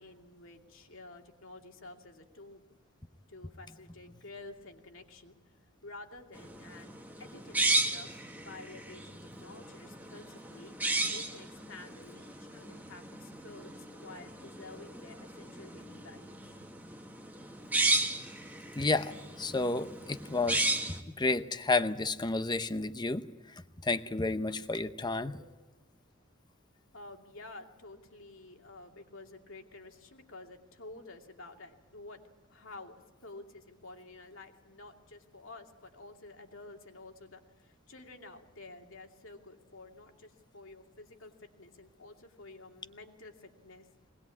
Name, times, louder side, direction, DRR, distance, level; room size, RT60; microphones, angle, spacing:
voice 1, 0.0-2.6 3.3-5.3 5.8-6.9 7.2-10.7 11.1-16.5 25.2-25.4 26.9-32.2 32.5-43.9, left 2 dB, 70° left, 3 dB, 2.6 m, -51 dB
sound 1, 6.4-21.0, right 2 dB, 10° right, 1.7 m, -35 dB
voice 2, 18.8-19.1 19.4-23.3 23.8-25.3, left 3 dB, 20° left, 11 dB, 0.8 m, -31 dB
21.5 x 20.0 x 8.6 m, 1.3 s
head